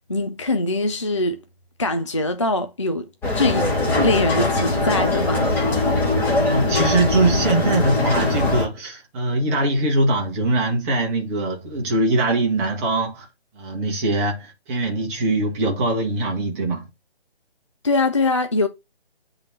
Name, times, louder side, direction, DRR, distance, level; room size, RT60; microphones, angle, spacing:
voice 1, 0.1-1.4 1.8-5.6 17.8-18.7, left 2 dB, 30° left, 0.4 m, -23 dB
sound 1, 3.2-8.7, left 2 dB, 5° left, 1.4 m, -21 dB
voice 2, 6.4-13.3 13.6-16.8, right 2 dB, 15° right, 1.1 m, -22 dB
8.7 x 3.8 x 4.0 m
figure-of-eight pair, 145°, 31 cm